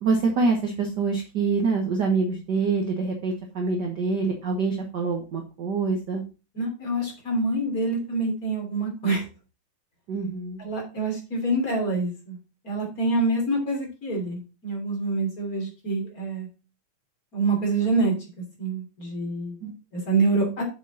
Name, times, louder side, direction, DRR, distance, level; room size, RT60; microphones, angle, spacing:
voice 1, 0.0-6.2 10.1-10.6 19.6-19.7, right 4 dB, 55° right, 2 dB, 1.2 m, -25 dB
voice 2, 6.5-9.2 10.6-12.4 12.6-16.5 17.3-18.1 18.6-19.6 19.9-20.6, right 2 dB, 25° left, 1 dB, 3.2 m, -26 dB
7.2 x 6.8 x 4.1 m, 0.32 s
omnidirectional pair, 3.6 m